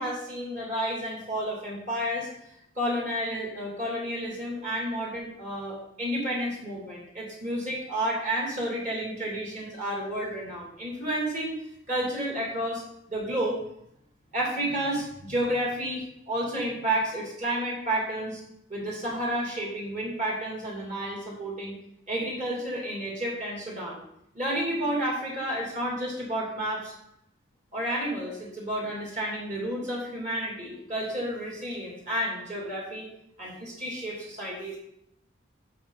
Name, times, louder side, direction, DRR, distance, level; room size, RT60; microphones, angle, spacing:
voice 1, 0.0-11.6 11.9-12.8 13.1-13.6 14.3-18.4 18.7-21.7 22.1-24.0 24.3-26.9 27.7-33.1 33.4-34.8, right 1 dB, 40° right, -3 dB, 2.8 m, -31 dB
11.5 x 6.6 x 4.0 m, 0.77 s
head